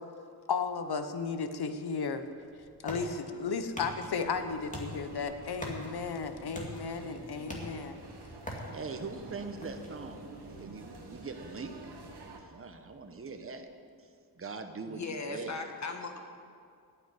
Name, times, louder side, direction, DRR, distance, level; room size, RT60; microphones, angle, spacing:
voice 1, 0.5-2.2 2.8-8.0, left 5 dB, 75° left, 9 dB, 0.9 m, -34 dB
sound 1, 2.1-13.6, equal, 20° left, 2.2 m, -47 dB
sound 2, 4.2-12.4, right 2 dB, 90° right, 1.5 m, -49 dB
voice 2, 8.4-11.8 12.5-13.7 14.4-15.0 15.3-15.5, right 4 dB, 35° right, 6 dB, 1.0 m, -42 dB
voice 3, 14.9-16.2, left 3 dB, 45° left, 4 dB, 1.3 m, -38 dB
9.0 x 9.0 x 9.6 m, 2.3 s
wide cardioid pair, 95°, 38 cm